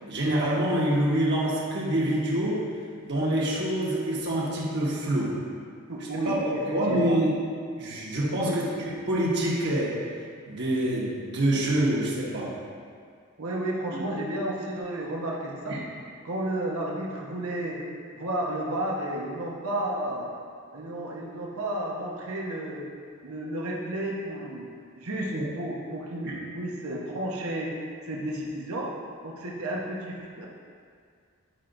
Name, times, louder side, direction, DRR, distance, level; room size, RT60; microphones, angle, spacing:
voice 1, 0.1-2.6 3.0-5.3 6.2-7.3 7.8-10.0 10.5-12.5 13.9-14.1 15.7-15.8 25.3-25.4 26.2-26.4, right 1 dB, 50° right, -6 dB, 1.5 m, -26 dB
voice 2, 5.9-7.2 8.3-8.6 13.4-15.8 16.2-17.8 18.1-20.3 20.7-22.9 23.2-24.7 25.0-27.7 28.1-28.9 29.2-30.5, right 1 dB, 80° right, -3 dB, 1.0 m, -32 dB
10.5 x 5.8 x 2.6 m, 2.1 s
head